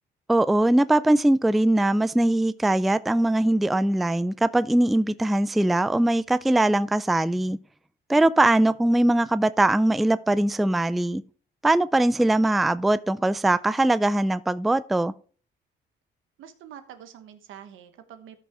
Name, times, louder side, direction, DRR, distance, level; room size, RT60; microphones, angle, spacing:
voice 1, 0.3-7.6 8.1-11.2 11.6-15.1, right 1 dB, ahead, 0.3 m, -21 dB
voice 2, 16.4-18.4, right 9 dB, 85° right, 1.2 m, -45 dB
13.5 x 5.9 x 3.5 m
cardioid pair, 90°, 20 cm